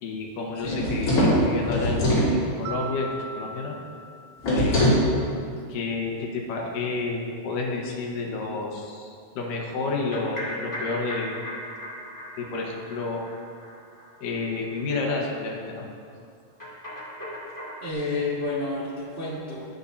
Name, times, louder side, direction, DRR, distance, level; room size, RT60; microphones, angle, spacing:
voice 1, 0.0-3.8 4.5-5.0 5.7-9.1 9.4-11.4 12.3-13.2 14.2-15.9, left 3 dB, 75° left, 0 dB, 2.7 m, -30 dB
sound 1, 0.6-2.3 4.4-5.1, equal, 45° left, 3.8 m, -21 dB
voice 2, 0.6-0.9 17.8-19.7, left 2 dB, 45° right, -8 dB, 0.7 m, -30 dB
Mallet percussion, 2.7-5.0, right 3 dB, 85° right, 2.4 m, -39 dB
sound 2, 9.9-14.4 14.7-14.8 15.1-15.2 15.4-15.5 16.6-17.9, equal, 5° left, 1.8 m, -38 dB
19.5 x 7.2 x 2.7 m, 2.3 s
omnidirectional pair, 3.9 m